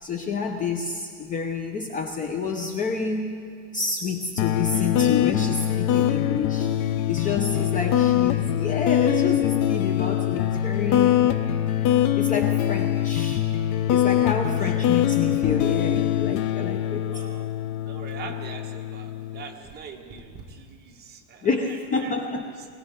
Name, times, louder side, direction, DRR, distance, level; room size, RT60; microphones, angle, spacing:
voice 1, 0.0-3.4 3.7-6.7 7.1-11.4 12.1-13.5 13.9-17.2 21.4-22.5, left 4 dB, 20° left, 4 dB, 0.7 m, -29 dB
sound 1, 4.4-19.5, left 11 dB, 50° left, 0.6 m, -23 dB
voice 2, 7.5-8.0 14.3-14.7 17.1-17.5 17.8-22.2 22.5-22.7, right 6 dB, 25° right, 0 dB, 1.6 m, -43 dB
21.5 x 16.0 x 3.8 m, 2.2 s
supercardioid pair, 145°, 38 cm